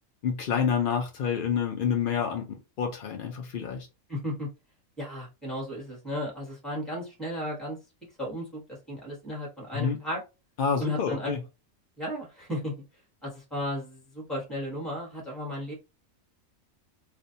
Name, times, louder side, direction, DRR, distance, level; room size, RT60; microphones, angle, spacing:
voice 1, 0.2-3.9 9.7-10.0 10.6-11.4, left 7 dB, 80° left, 0.4 m, -28 dB
voice 2, 4.1-4.5 5.0-7.8 8.2-10.2 10.8-11.3 12.0-12.7 13.2-15.7, left 1 dB, ahead, 0.9 m, -34 dB
2.5 x 2.1 x 2.6 m
omnidirectional pair, 1.5 m